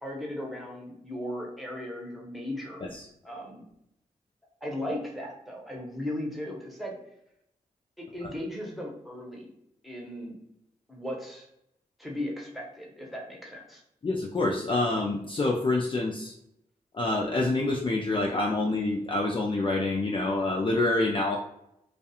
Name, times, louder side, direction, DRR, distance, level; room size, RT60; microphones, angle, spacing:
voice 1, 0.0-2.8 3.2-3.6 4.6-7.0 8.0-9.5 9.8-10.4 10.9-11.5 12.0-13.8, left 1 dB, ahead, -2 dB, 1.0 m, -37 dB
voice 2, 14.0-16.3 16.9-21.4, left 2 dB, 35° left, -1 dB, 0.4 m, -27 dB
2.3 x 2.3 x 2.7 m, 0.80 s
cardioid pair, 45°, 16 cm